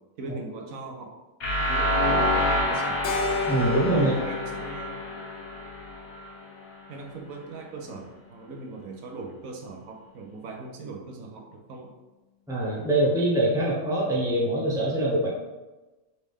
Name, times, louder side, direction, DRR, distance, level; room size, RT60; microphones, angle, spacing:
voice 1, 0.2-1.1 1.6-3.0 3.9-5.3 6.9-8.0 8.3-11.9, right 3 dB, 80° right, 1 dB, 1.1 m, -40 dB
sound 1, 1.4-6.3, left 1 dB, 90° left, 1.5 m, -27 dB
Keyboard (musical), 3.0-7.4, left 4 dB, 65° left, 0.7 m, -34 dB
voice 2, 3.5-4.1 12.5-15.3, right 1 dB, 5° right, -5 dB, 0.8 m, -24 dB
4.1 x 3.1 x 3.5 m, 1.1 s
omnidirectional pair, 1.4 m